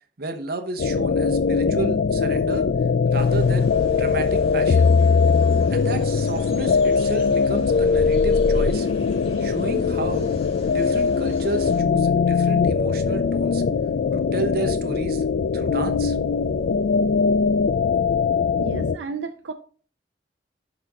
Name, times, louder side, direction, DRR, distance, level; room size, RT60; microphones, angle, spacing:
voice 1, 0.2-2.7 3.1-4.9 5.7-8.9 9.4-10.3 10.7-13.6 14.1-15.2 15.5-16.2, right 2 dB, 60° right, 7 dB, 0.9 m, -31 dB
sound 1, 0.8-19.0, left 5 dB, 65° left, 0.4 m, -21 dB
sound 2, 3.1-11.8, equal, 35° left, 1.7 m, -42 dB
voice 2, 18.6-19.5, right 4 dB, 85° right, 8 dB, 0.5 m, -32 dB
10.5 x 4.1 x 3.6 m, 0.41 s
head